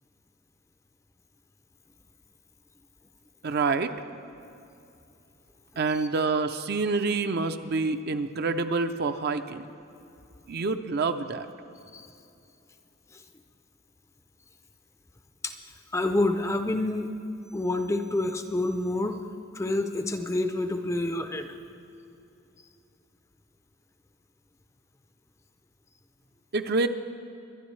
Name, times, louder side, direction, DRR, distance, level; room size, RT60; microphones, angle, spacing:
voice 1, 3.4-3.9 5.8-9.6 10.5-11.5 26.5-26.9, right 4 dB, 50° right, 9 dB, 0.5 m, -27 dB
voice 2, 15.9-17.1 17.5-19.2 19.5-21.6, left 2 dB, 15° left, 7 dB, 0.4 m, -28 dB
23.0 x 11.0 x 3.2 m, 2.7 s
head